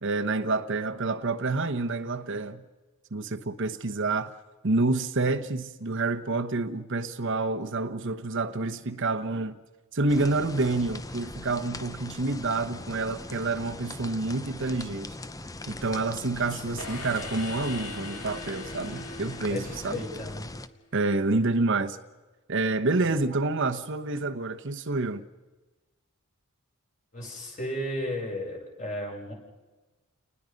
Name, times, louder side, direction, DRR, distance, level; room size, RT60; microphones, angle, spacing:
voice 1, 0.0-2.6 3.1-4.3 4.6-9.6 9.9-15.1 15.7-19.9 20.9-22.0 22.5-25.2, right 3 dB, 60° right, 1.0 m, -28 dB
sound 1, 10.1-20.7, left 2 dB, 15° left, 0.7 m, -41 dB
sound 2, 16.8-20.6, left 3 dB, 85° left, 3.0 m, -41 dB
voice 2, 19.5-20.5 23.0-23.1 27.1-29.3, left 1 dB, 35° left, 6.6 m, -34 dB
29.5 x 20.0 x 5.3 m
head